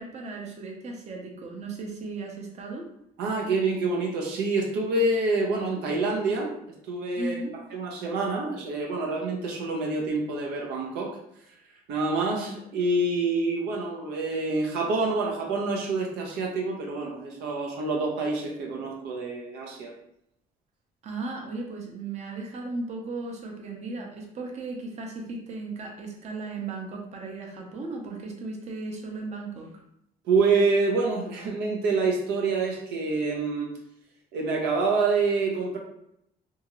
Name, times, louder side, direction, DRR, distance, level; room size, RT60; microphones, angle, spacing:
voice 1, 0.0-2.8 7.2-7.5 21.0-29.7, right 3 dB, 40° right, 0 dB, 0.7 m, -36 dB
voice 2, 3.2-6.5 6.9-7.4 7.7-11.2 11.9-19.9 30.2-33.8 34.3-35.8, right 3 dB, 85° right, 0 dB, 0.6 m, -27 dB
2.7 x 2.4 x 2.9 m, 0.76 s
cardioid pair, 110°, 17 cm